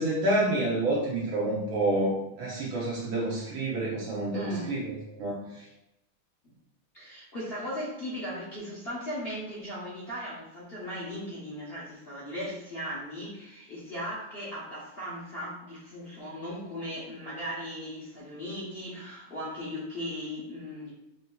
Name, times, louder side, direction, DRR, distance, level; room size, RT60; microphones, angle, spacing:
voice 1, 0.0-5.6, right 1 dB, 70° right, -5 dB, 1.6 m, -28 dB
voice 2, 4.3-4.7 5.4-5.5 6.9-20.9, equal, 55° left, -7 dB, 0.7 m, -37 dB
6.3 x 2.7 x 2.2 m, 0.88 s
omnidirectional pair, 2.4 m